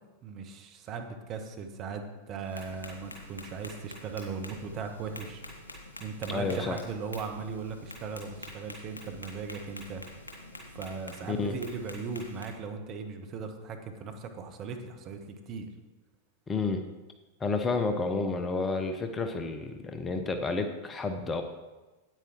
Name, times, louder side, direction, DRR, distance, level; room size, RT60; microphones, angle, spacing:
voice 1, 0.2-5.4 6.0-10.0 10.7-15.6, right 5 dB, 35° right, 4 dB, 1.3 m, -38 dB
Tap, 2.4-12.5, left 1 dB, 80° left, 2.2 m, -46 dB
voice 2, 6.3-6.8 11.3-11.6 16.5-16.8 17.4-21.4, left 3 dB, 20° left, 7 dB, 0.9 m, -30 dB
9.1 x 9.0 x 4.5 m, 1.2 s
figure-of-eight pair, 90°, 0 cm